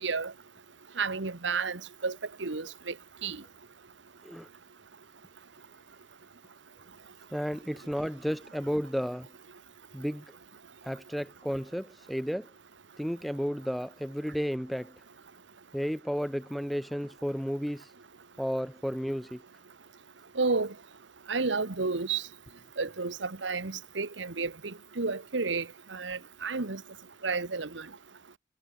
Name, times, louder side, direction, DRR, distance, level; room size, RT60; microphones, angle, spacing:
voice 1, 0.0-0.3 1.0-2.9 3.2-3.4 20.3-20.7 21.3-22.2 22.8-26.8 27.2-27.9, right 4 dB, 80° right, 1.3 m, -31 dB
voice 2, 7.3-9.3 9.9-10.2 10.8-12.5 13.0-14.9 15.7-17.9 18.4-19.4, equal, ahead, 0.5 m, -32 dB
head